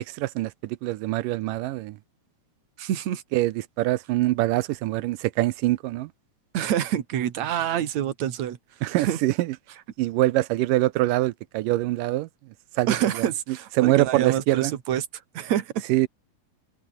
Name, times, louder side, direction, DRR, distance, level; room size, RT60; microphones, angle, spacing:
voice 1, 0.0-2.0 3.3-6.1 8.8-9.6 10.0-12.3 12.8-13.3 13.8-14.7 15.9-16.1, right 17 dB, 80° right, 2.3 m, -24 dB
voice 2, 2.8-3.2 6.5-8.6 9.0-9.2 12.9-15.1 15.3-15.8, right 10 dB, 60° right, 2.8 m, -26 dB
omnidirectional pair, 3.9 m